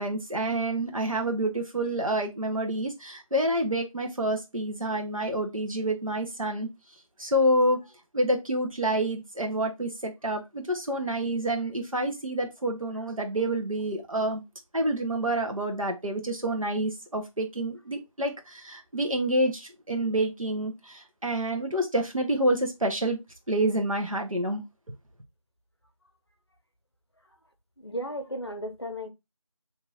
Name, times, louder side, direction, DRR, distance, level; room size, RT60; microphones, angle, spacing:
voice 1, 0.0-6.7 7.2-7.8 8.1-14.4 14.7-23.2 23.5-24.6, right 1 dB, 75° right, 1.1 m, -28 dB
voice 2, 27.8-29.1, equal, 50° left, 0.7 m, -34 dB
2.9 x 2.5 x 3.9 m
figure-of-eight pair, 180°, 18 cm